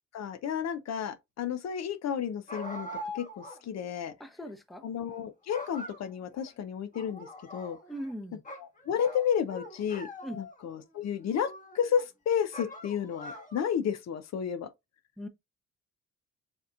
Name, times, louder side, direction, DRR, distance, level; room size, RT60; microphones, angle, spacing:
voice 1, 0.1-2.9 3.1-4.1 4.8-7.8 8.6-10.1 10.4-14.7, left 8 dB, 60° left, 0.6 m, -32 dB
sound 1, 2.5-3.6 4.0-4.1 4.9-5.2 5.5-6.5 6.9-8.1 8.4-10.7 11.2-12.0 12.5-13.8, left 1 dB, 25° left, 1.3 m, -43 dB
voice 2, 4.2-4.8 7.9-8.4 10.2-10.4 15.2-15.3, equal, ahead, 0.7 m, -39 dB
6.4 x 2.9 x 2.4 m
cardioid pair, 90°, 30 cm